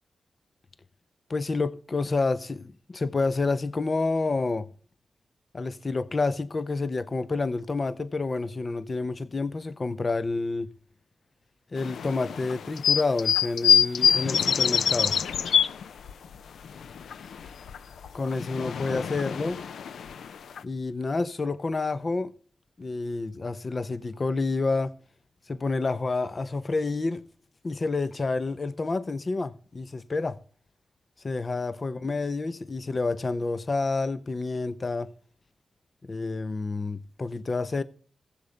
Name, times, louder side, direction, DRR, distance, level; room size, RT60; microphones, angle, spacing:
voice 1, 1.3-4.7 5.5-10.7 11.7-15.2 18.1-19.6 20.6-22.3 22.8-25.0 25.5-27.2 27.6-30.4 31.2-35.1 36.0-37.8, left 3 dB, 45° left, 0.8 m, -29 dB
sound 1, 11.8-16.3 16.6-17.8 18.0-20.6, left 7 dB, 80° left, 0.4 m, -25 dB
15.0 x 7.2 x 3.3 m
supercardioid pair, 45°, 0 cm